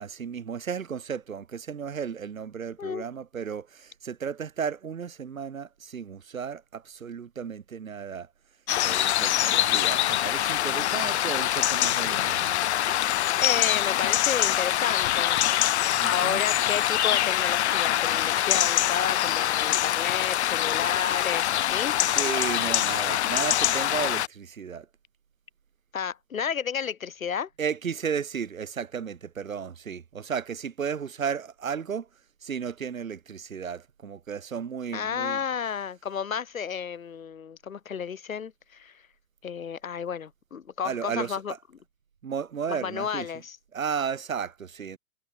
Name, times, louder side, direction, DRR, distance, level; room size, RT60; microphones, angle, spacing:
voice 1, 0.0-8.3 8.8-12.6 16.0-16.4 21.9-24.9 27.6-32.1 32.4-35.4 40.8-41.4 42.2-43.3 43.7-45.0, right 7 dB, 65° right, 2.4 m, -34 dB
sound 1, 8.7-24.3, left 12 dB, 50° left, 0.5 m, -24 dB
voice 2, 13.4-15.4 15.7-22.0 25.9-27.5 34.9-38.9 39.4-41.5 42.7-43.6, left 7 dB, 70° left, 1.6 m, -32 dB
figure-of-eight pair, 110°, 43 cm